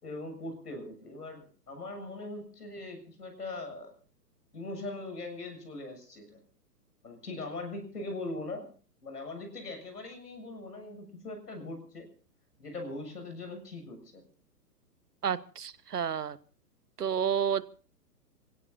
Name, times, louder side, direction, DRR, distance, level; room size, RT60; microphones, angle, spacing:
voice 1, 0.0-3.9 4.5-6.4 7.0-8.7 9.0-12.1 12.6-14.3, left 2 dB, 70° left, 6 dB, 7.3 m, -41 dB
voice 2, 15.2-16.4 17.0-17.6, right 8 dB, 70° right, 18 dB, 1.1 m, -30 dB
28.5 x 17.0 x 2.7 m, 0.39 s
figure-of-eight pair, 120°, 48 cm